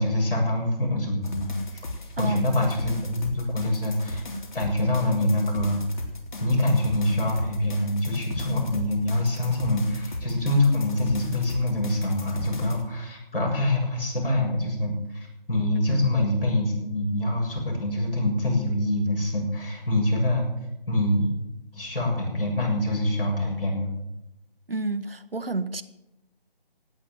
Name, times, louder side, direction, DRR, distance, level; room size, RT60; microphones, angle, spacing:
voice 1, 0.0-1.8 2.2-4.2 4.5-5.8 6.4-20.4 20.9-21.3 21.7-23.9, left 1 dB, 70° left, -1 dB, 7.4 m, -25 dB
sound 1, 1.2-12.8, left 1 dB, 55° left, 3.3 m, -37 dB
voice 2, 2.2-2.6 15.9-16.0 24.7-25.8, right 2 dB, 75° right, 12 dB, 1.4 m, -30 dB
17.0 x 9.8 x 7.8 m, 0.90 s
figure-of-eight pair, 155°, 29 cm